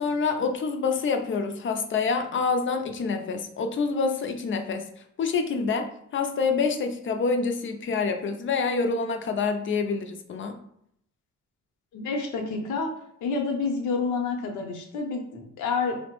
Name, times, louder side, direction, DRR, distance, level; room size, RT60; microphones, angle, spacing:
voice 1, 0.0-4.9 5.2-10.6, left 4 dB, 40° left, 6 dB, 0.4 m, -27 dB
voice 2, 11.9-12.9 13.2-16.0, left 4 dB, 80° left, 3 dB, 0.7 m, -28 dB
3.0 x 2.1 x 2.9 m, 0.71 s
cardioid pair, 90°, 30 cm